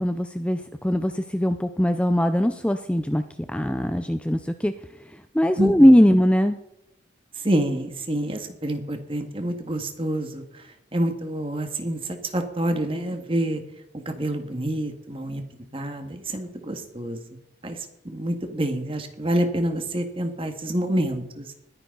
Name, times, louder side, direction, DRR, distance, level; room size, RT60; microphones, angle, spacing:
voice 1, 0.0-3.2 3.5-4.7 5.0-6.6, equal, 5° left, 9 dB, 0.5 m, -20 dB
voice 2, 5.6-6.2 7.4-13.6 14.1-15.4 15.7-17.2 17.6-21.5, right 1 dB, 30° right, 6 dB, 1.8 m, -27 dB
20.5 x 10.0 x 4.0 m, 0.84 s
head